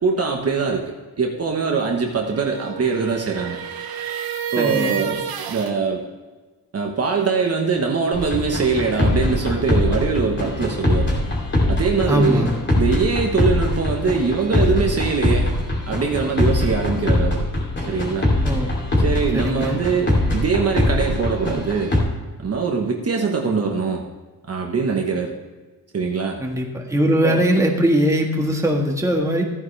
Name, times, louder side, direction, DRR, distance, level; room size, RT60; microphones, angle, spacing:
voice 1, 0.0-0.8 1.2-3.6 4.5-6.0 6.7-11.1 11.7-12.5 12.8-15.5 15.9-17.5 17.9-18.3 19.0-21.9 22.4-24.0 24.5-25.3 25.9-26.4 27.2-27.4, right 5 dB, 40° right, 1 dB, 1.3 m, -22 dB
sound 1, 2.1-5.7, right 9 dB, 65° right, 1.2 m, -30 dB
voice 2, 4.6-5.0 12.1-12.5 18.4-18.8 19.3-19.8 26.4-29.4, equal, 10° right, 0 dB, 1.7 m, -20 dB
sound 2, 8.1-22.0, left 1 dB, 30° left, 3.0 m, -22 dB
14.5 x 9.6 x 3.3 m, 1.3 s
cardioid pair, 125°, 39 cm